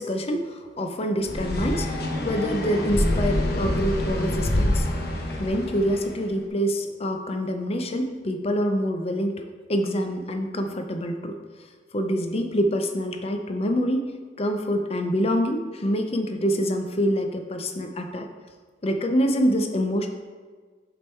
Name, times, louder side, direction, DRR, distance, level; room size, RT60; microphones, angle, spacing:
voice 1, 0.0-4.9 5.4-11.4 11.9-14.1 14.4-18.3 18.8-20.1, equal, 35° left, 5 dB, 0.5 m, -26 dB
sound 1, 1.2-6.1, left 1 dB, 60° left, 0.8 m, -26 dB
7.2 x 3.6 x 4.4 m, 1.5 s
head